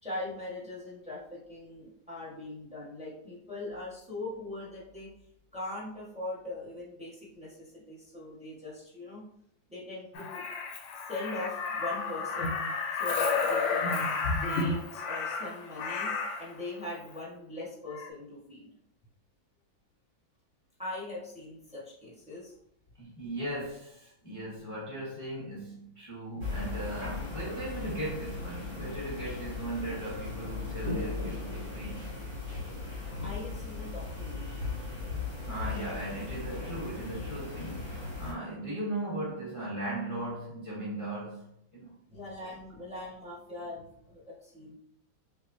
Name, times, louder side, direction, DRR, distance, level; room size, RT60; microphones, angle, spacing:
voice 1, 0.0-5.1 5.5-9.2 9.7-10.4 11.1-12.6 13.0-16.1 16.4-18.7 20.8-22.5 33.2-34.6 42.1-44.7, left 2 dB, 5° right, 1.0 m, -41 dB
Crow, 10.2-16.5 17.9-18.1, left 4 dB, 80° left, 1.4 m, -31 dB
voice 2, 23.0-32.1 35.5-41.9, right 1 dB, 25° left, 0.7 m, -38 dB
sound 1, 26.4-38.3, left 3 dB, 60° right, 2.4 m, -37 dB
5.3 x 2.7 x 2.6 m
omnidirectional pair, 2.1 m